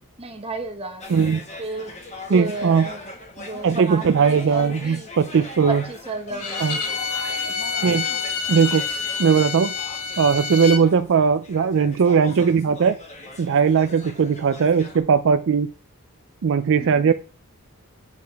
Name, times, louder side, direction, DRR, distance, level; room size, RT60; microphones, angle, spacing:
voice 1, 0.2-1.1 1.6-2.0 2.3-3.0 3.4-5.1 5.7-6.6 7.4-7.9 16.8-17.1, right 3 dB, 25° right, 5 dB, 1.2 m, -33 dB
sound 1, 1.0-15.0, left 2 dB, 30° left, 1.7 m, -40 dB
voice 2, 1.1-1.4 2.3-2.9 3.6-5.8 6.6-6.8 7.8-8.1 8.5-8.9 9.2-9.7 10.2-13.0 13.4-15.7 16.4-17.1, right 6 dB, 60° right, 10 dB, 0.4 m, -19 dB
Bowed string instrument, 6.4-10.8, left 5 dB, 85° left, 1.2 m, -28 dB
8.1 x 6.6 x 3.5 m, 0.37 s
head